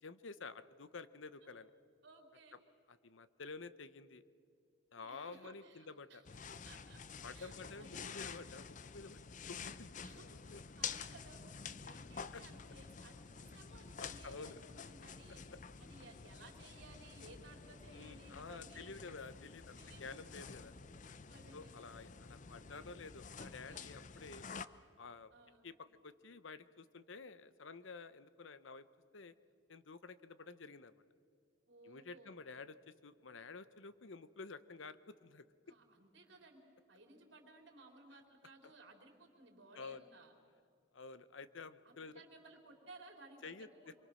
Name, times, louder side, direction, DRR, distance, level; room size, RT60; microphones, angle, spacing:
voice 1, 0.0-1.7 2.9-4.2 4.9-6.2 7.2-10.0 10.5-10.6 12.3-12.4 14.0-14.6 15.3-15.6 17.9-20.7 21.5-24.5 25.0-25.3 25.6-25.7 26.0-28.8 29.1-29.3 29.7-30.9 31.8-32.8 33.0-35.5 39.8-40.1 40.9-42.2 43.4-43.9, left 4 dB, 75° left, 14 dB, 0.8 m, -51 dB
voice 2, 2.0-2.6 5.0-6.2 6.6-7.0 7.3-8.1 10.0-15.5 15.8-19.2 19.8-20.2 21.3-21.9 23.4-23.9 25.3-25.7 31.7-32.4 35.7-36.6 36.9-40.3 41.9-43.9, right 2 dB, 65° right, 3 dB, 3.4 m, -59 dB
sound 1, 6.2-24.6, left 6 dB, 40° left, 0.6 m, -49 dB
26.0 x 23.5 x 6.3 m, 2.4 s
head